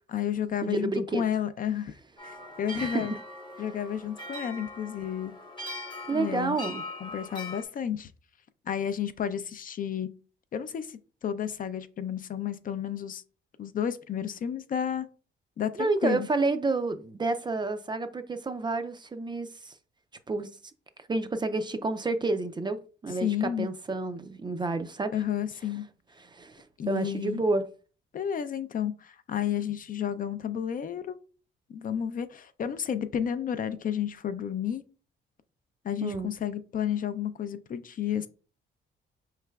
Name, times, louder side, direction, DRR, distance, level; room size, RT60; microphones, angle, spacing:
voice 1, 0.1-1.9 2.2-3.1 3.6-5.3 6.1-6.6 7.0-8.1 8.7-10.1 10.5-13.2 13.6-15.1 15.6-16.3 23.1-23.7 25.1-25.8 26.8-27.4 28.1-31.2 31.7-34.8 35.8-38.3, left 9 dB, 45° left, 0.4 m, -31 dB
voice 2, 0.6-1.2 2.7-3.1 3.6-3.7 6.1-6.8 15.8-19.7 20.3-20.5 21.1-25.2 26.2-27.6 36.0-36.3, right 3 dB, 25° right, 0.4 m, -30 dB
sound 1, 2.2-7.6, left 1 dB, 25° left, 0.9 m, -41 dB
4.7 x 3.2 x 2.3 m
cardioid pair, 90°, 20 cm